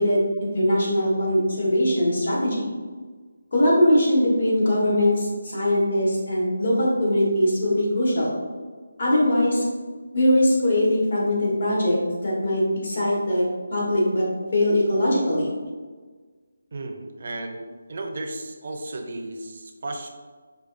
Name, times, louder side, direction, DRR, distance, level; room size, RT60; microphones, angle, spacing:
voice 1, 0.0-2.7 3.5-8.4 9.0-9.6 10.1-14.3 14.5-15.5, left 1 dB, 60° left, -5 dB, 1.2 m, -21 dB
voice 2, 16.7-17.6 17.9-20.1, right 2 dB, 50° right, 4 dB, 0.5 m, -34 dB
4.9 x 2.3 x 2.5 m, 1.4 s
figure-of-eight pair, 165°, 0 cm